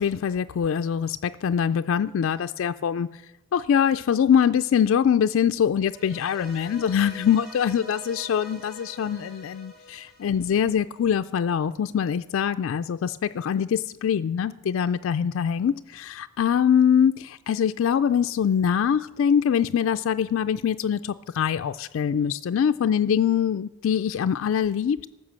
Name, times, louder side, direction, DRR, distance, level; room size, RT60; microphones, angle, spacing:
voice 1, 0.0-3.2 3.5-25.1, left 8 dB, 75° left, 10 dB, 0.3 m, -23 dB
sound 1, 5.9-11.1, left 1 dB, ahead, 2.9 m, -45 dB
13.5 x 6.0 x 7.5 m, 0.98 s
head